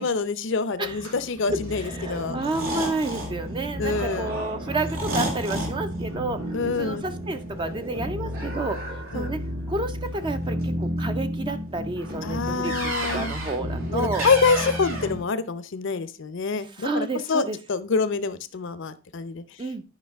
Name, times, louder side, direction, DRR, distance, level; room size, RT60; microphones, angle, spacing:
voice 1, 0.0-2.4 3.8-4.4 6.5-7.0 8.2-8.3 9.1-9.3 12.2-13.3 13.9-19.4, left 4 dB, 65° left, 14 dB, 0.6 m, -26 dB
sound 1, 0.8-15.2, equal, 85° right, 2.6 m, -31 dB
voice 2, 1.5-6.4 6.8-8.9 9.1-9.4 9.7-14.3 16.6-17.6 19.6-19.8, right 2 dB, 25° right, 9 dB, 0.4 m, -30 dB
9.8 x 5.3 x 3.5 m, 0.32 s
head